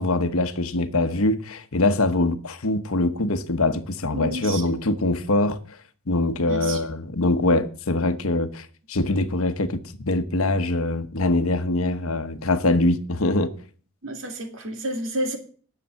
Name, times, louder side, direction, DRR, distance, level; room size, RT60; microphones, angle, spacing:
voice 1, 0.0-5.6 6.1-13.5, left 2 dB, 75° left, 1.1 m, -23 dB
voice 2, 4.1-4.7 6.4-6.9 14.0-15.4, right 1 dB, 60° right, 2.4 m, -30 dB
10.5 x 6.8 x 8.5 m
head